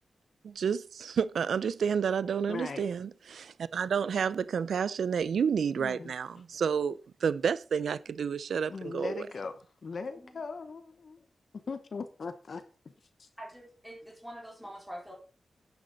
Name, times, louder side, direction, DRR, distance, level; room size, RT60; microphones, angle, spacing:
voice 1, 0.6-9.3, right 7 dB, 90° right, 0.4 m, -30 dB
voice 2, 2.5-2.9 5.8-6.4 8.7-11.2 11.7-12.6, left 4 dB, 50° left, 0.9 m, -39 dB
voice 3, 13.4-15.1, equal, 5° right, 4.5 m, -45 dB
10.5 x 9.7 x 3.9 m
wide cardioid pair, 175°, 0 cm